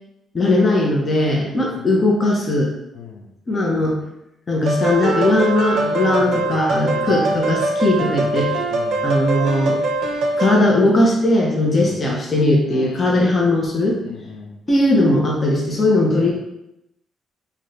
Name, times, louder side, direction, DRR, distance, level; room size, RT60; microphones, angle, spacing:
voice 1, 0.3-2.7 3.5-4.0 4.5-8.6 9.0-9.8 10.4-14.0 14.7-16.3, left 1 dB, 35° left, -2 dB, 0.7 m, -18 dB
voice 2, 1.1-1.8 2.9-3.3 5.8-6.5 6.8-7.2 8.0-8.2 8.7-9.0 11.7-12.0 12.7-13.3 14.0-14.6 16.1-16.3, left 3 dB, 80° left, 2 dB, 0.6 m, -35 dB
sound 1, 4.7-10.6, right 2 dB, 70° right, 0.5 m, -22 dB
2.8 x 2.6 x 3.2 m, 0.85 s
cardioid pair, 90°, 0 cm